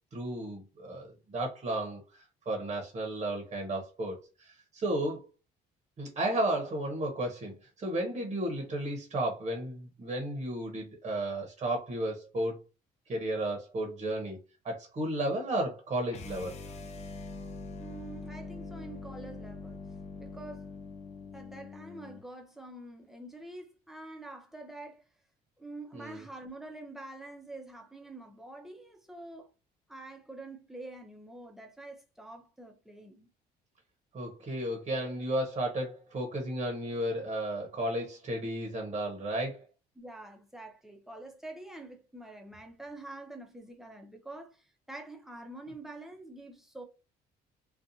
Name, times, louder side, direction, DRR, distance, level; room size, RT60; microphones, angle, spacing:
voice 1, 0.1-5.2 6.0-12.6 13.1-14.4 14.6-16.5 25.9-26.2 34.1-39.6, right 1 dB, 35° right, 0.8 m, -33 dB
sound 1, 16.1-22.3, left 3 dB, 40° left, 0.5 m, -43 dB
voice 2, 17.8-19.9 20.2-20.7 21.3-25.0 25.6-29.5 29.9-33.3 40.0-46.8, right 2 dB, ahead, 0.6 m, -46 dB
2.5 x 2.3 x 2.6 m
cardioid pair, 110°, 17 cm